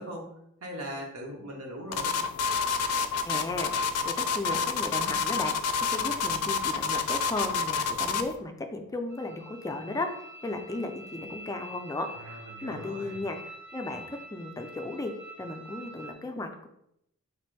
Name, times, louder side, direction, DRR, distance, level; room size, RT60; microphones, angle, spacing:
voice 1, 0.0-2.2 12.1-13.2, equal, 85° right, 0 dB, 1.0 m, -40 dB
sound 1, 1.9-8.3, left 5 dB, 90° left, 0.4 m, -28 dB
voice 2, 3.2-5.6 5.9-13.4 13.7-16.7, left 2 dB, 15° left, 5 dB, 0.3 m, -35 dB
sound 2, 9.1-16.1, right 1 dB, 55° right, 0.9 m, -46 dB
3.3 x 2.5 x 4.5 m, 0.77 s
head